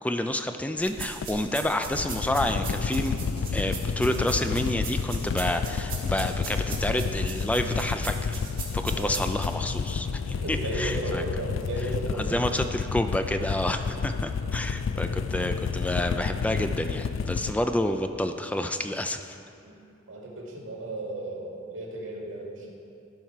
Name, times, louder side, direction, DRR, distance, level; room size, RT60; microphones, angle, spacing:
voice 1, 0.0-8.4 8.7-11.2 12.2-19.4, left 1 dB, 5° left, 7 dB, 0.3 m, -29 dB
sound 1, 0.8-9.5, right 5 dB, 45° right, 2.3 m, -40 dB
sound 2, 1.0-17.5, left 5 dB, 85° left, 0.4 m, -30 dB
voice 2, 8.9-9.3 10.3-12.6 19.6-19.8 20.1-22.7, right 1 dB, 90° right, -2 dB, 2.2 m, -35 dB
16.0 x 5.7 x 4.6 m, 2.6 s
head